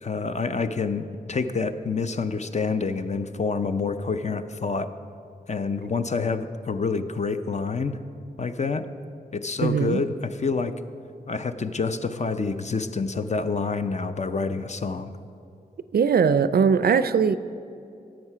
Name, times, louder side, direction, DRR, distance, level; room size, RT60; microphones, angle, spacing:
voice 1, 0.0-4.9 5.5-8.0 8.4-8.9 9.3-10.8 11.3-15.1, left 4 dB, 45° left, 9 dB, 0.5 m, -27 dB
voice 2, 9.6-10.0 15.9-17.4, right 6 dB, 70° right, 13 dB, 0.4 m, -20 dB
10.5 x 7.6 x 5.6 m, 2.5 s
wide cardioid pair, 70°, 16 cm